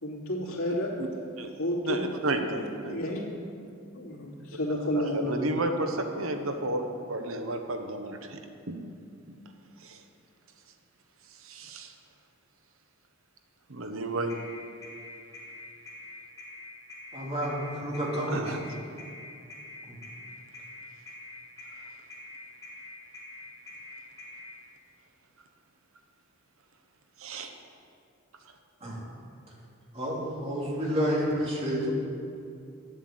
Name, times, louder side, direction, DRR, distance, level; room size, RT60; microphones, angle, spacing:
voice 1, 0.0-0.9 1.6-2.1 2.5-3.2 3.9-5.6, left 1 dB, 80° left, -4 dB, 2.8 m, -31 dB
voice 2, 1.8-3.0 4.8-8.4 8.7-8.8 9.3-9.4 9.8-10.0 11.4-11.9 13.7-14.3 18.1-18.7 27.2-27.5, right 2 dB, 75° right, 5 dB, 1.0 m, -32 dB
sound 1, 14.3-24.5, left 2 dB, 15° left, 2.1 m, -45 dB
voice 3, 17.1-18.5 19.9-20.0 28.8-29.0 29.9-31.9, equal, 30° right, -4 dB, 2.5 m, -30 dB
10.5 x 7.9 x 8.0 m, 2.5 s
head